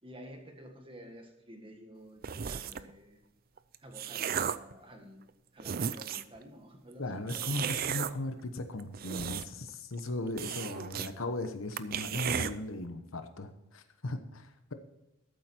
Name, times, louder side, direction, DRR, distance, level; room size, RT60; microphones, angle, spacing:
voice 1, 0.0-3.2 3.8-5.2 5.5-8.0, equal, 25° right, 3 dB, 1.7 m, -51 dB
sound 1, 2.2-2.9 3.6-4.7 5.3-5.4 5.6-6.4 7.3-8.1 8.8-9.7 10.0-10.1 10.4-11.1 11.4-11.5 11.8-12.5, right 8 dB, 45° right, 0.5 m, -34 dB
voice 2, 7.0-14.7, left 2 dB, 80° left, 8 dB, 1.1 m, -37 dB
13.5 x 7.9 x 4.5 m, 0.94 s
head